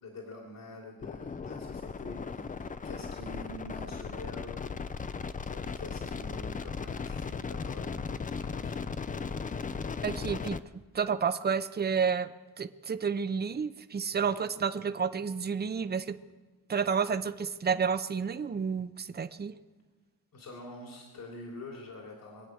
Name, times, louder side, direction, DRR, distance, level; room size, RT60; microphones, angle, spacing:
voice 1, 0.0-4.7 5.4-9.0 20.3-22.5, left 2 dB, 70° left, 0 dB, 3.1 m, -46 dB
sound 1, 1.0-10.6, left 5 dB, 25° left, 0.4 m, -37 dB
voice 2, 10.0-10.6 10.9-12.3 12.6-16.2 16.7-19.5, right 6 dB, 30° right, 11 dB, 0.6 m, -30 dB
24.0 x 9.0 x 6.3 m, 1.3 s
wide cardioid pair, 155°, 36 cm